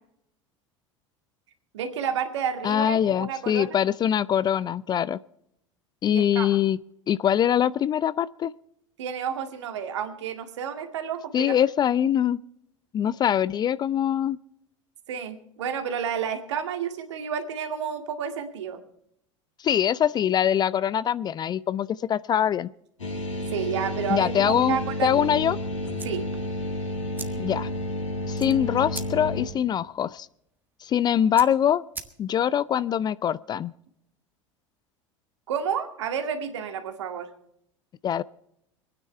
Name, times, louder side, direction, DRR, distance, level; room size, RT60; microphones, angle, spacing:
voice 1, 1.7-3.8 6.1-6.5 9.0-11.6 15.1-18.8 23.5-25.3 26.0-26.3 35.5-37.3, right 7 dB, 65° right, 6 dB, 2.1 m, -30 dB
voice 2, 2.6-5.2 6.0-6.8 7.1-8.5 11.3-12.4 12.9-14.4 19.6-22.7 24.1-25.6 27.4-27.7 28.3-30.3 30.8-31.8 32.2-33.7 38.0-38.2, left 9 dB, 25° left, 20 dB, 0.4 m, -23 dB
sound 1, 23.0-29.5, left 1 dB, 80° left, 5.9 m, -31 dB
sound 2, 25.9-32.6, right 3 dB, 10° right, 1.6 m, -44 dB
25.0 x 9.7 x 4.4 m, 0.75 s
figure-of-eight pair, 75°, 16 cm